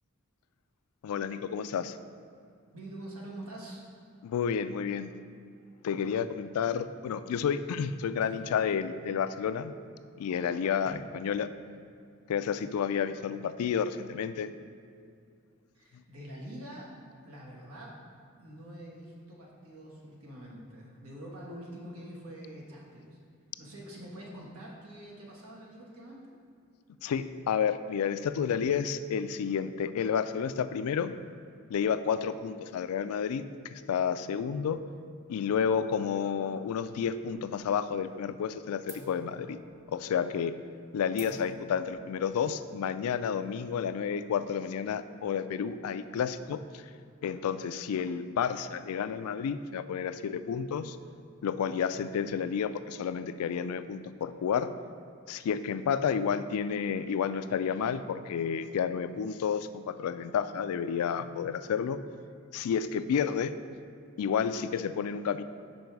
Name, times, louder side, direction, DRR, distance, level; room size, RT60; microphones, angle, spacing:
voice 1, 1.0-2.0 4.2-5.1 5.8-9.7 10.2-11.5 12.3-14.5 27.0-31.1 31.7-34.8 35.3-39.6 39.9-40.5 40.9-46.8 47.2-51.0 51.4-54.7 55.3-62.0 62.5-63.5 64.2-65.4, left 7 dB, 85° left, 12 dB, 0.3 m, -31 dB
voice 2, 2.7-3.8 5.9-6.3 8.3-8.4 10.8-11.0 15.7-16.9 17.2-18.0 18.4-23.2 23.6-26.3 31.0-31.2, right 1 dB, 90° right, -3 dB, 1.4 m, -45 dB
sound 1, 37.0-37.8 38.1-38.5 38.9-44.0, right 2 dB, 30° right, 0.7 m, -52 dB
5.4 x 5.3 x 4.6 m, 2.3 s
head